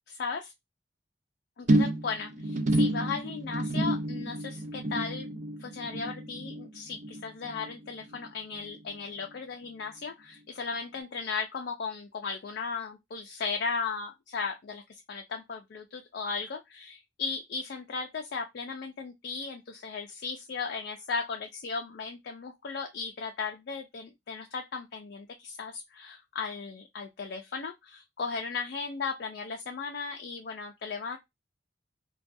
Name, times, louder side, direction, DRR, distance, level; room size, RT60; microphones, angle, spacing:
voice 1, 0.1-0.5 1.6-5.3 5.6-31.2, left 5 dB, 60° left, 0.4 m, -36 dB
sound 1, 1.7-8.3 8.5-9.0 9.3-9.4, right 1 dB, 40° right, 0.4 m, -30 dB
2.3 x 2.2 x 2.6 m
head